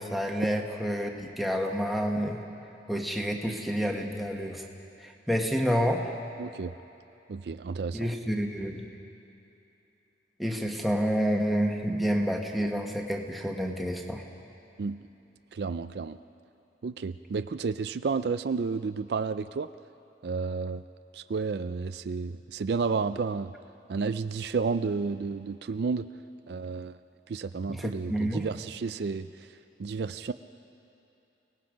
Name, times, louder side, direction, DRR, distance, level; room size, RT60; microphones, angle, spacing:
voice 1, 0.0-2.4 2.9-4.7 5.0-6.1 7.9-8.8 10.4-14.2 27.7-28.5, equal, ahead, 1 dB, 1.4 m, -29 dB
voice 2, 6.4-6.7 7.3-8.1 14.8-15.0 15.5-16.2 16.8-19.7 20.2-20.8 21.1-23.5 23.9-26.1 26.5-27.0 27.3-29.5 29.8-30.3, right 4 dB, 65° right, 12 dB, 0.4 m, -31 dB
29.0 x 18.5 x 5.2 m, 2.9 s
head